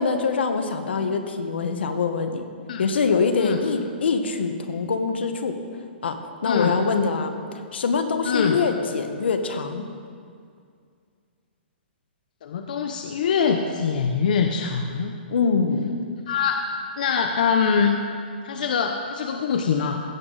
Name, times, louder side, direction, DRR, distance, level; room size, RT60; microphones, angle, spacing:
voice 1, 0.0-2.5 2.8-5.6 6.0-7.3 7.7-9.9 15.3-16.0, left 5 dB, 75° left, 7 dB, 1.1 m, -24 dB
voice 2, 6.4-6.8 8.2-8.6 12.4-15.1 16.3-16.7 17.0-18.0 18.4-20.0, left 6 dB, 50° left, 4 dB, 0.6 m, -23 dB
15.5 x 7.9 x 3.9 m, 2.2 s
hypercardioid pair, 175°, 6 cm